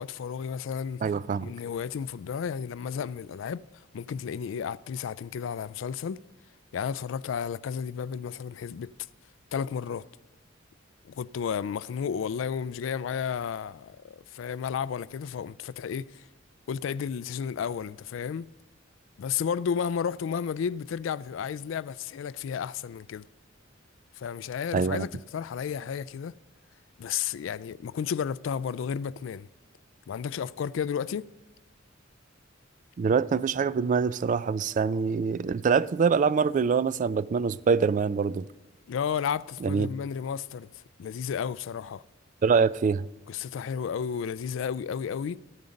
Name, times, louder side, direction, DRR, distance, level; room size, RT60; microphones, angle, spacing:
voice 1, 0.0-1.0 1.4-3.6 3.9-6.2 6.7-8.9 9.5-10.1 11.1-16.2 16.7-18.5 19.2-23.2 24.2-26.3 27.0-29.5 30.1-31.3 38.9-40.7 41.0-42.0 43.3-45.4, left 7 dB, 70° left, 0.3 m, -32 dB
voice 2, 1.0-1.5 24.7-25.1 33.0-38.5 39.6-39.9 42.4-43.1, right 5 dB, 40° right, 0.3 m, -24 dB
14.0 x 9.4 x 5.2 m
head